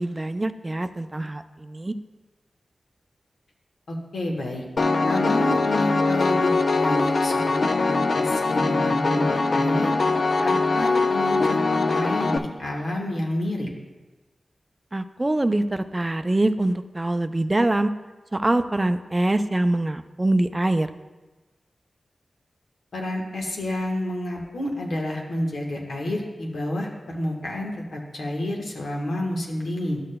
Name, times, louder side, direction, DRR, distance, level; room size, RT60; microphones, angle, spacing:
voice 1, 0.0-1.9 14.9-17.9 18.3-20.9, right 2 dB, 30° right, 10 dB, 0.4 m, -24 dB
voice 2, 3.9-4.6 5.0-9.9 10.4-13.7 22.9-30.0, left 1 dB, 85° left, -1 dB, 1.2 m, -29 dB
Piano, 4.8-12.4, left 3 dB, 70° left, 0.4 m, -22 dB
12.0 x 6.5 x 2.2 m, 1.2 s
cardioid pair, 50°, 0 cm